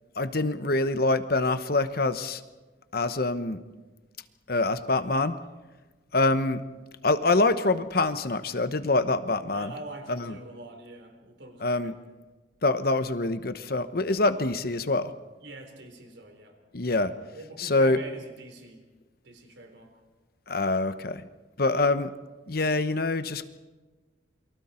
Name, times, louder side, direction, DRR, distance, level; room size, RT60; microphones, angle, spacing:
voice 1, 0.2-2.4 2.9-3.6 4.5-5.4 6.1-6.6 7.0-9.7 10.1-10.3 11.6-11.9 12.6-15.1 16.7-17.1 17.6-18.0 20.5-21.2 21.6-22.1 22.5-23.5, left 2 dB, 55° left, 11 dB, 1.0 m, -25 dB
voice 2, 9.5-11.9 15.4-16.6 17.3-18.9 19.2-19.9, right 2 dB, 75° right, 5 dB, 3.8 m, -44 dB
29.0 x 23.5 x 4.4 m, 1.3 s
head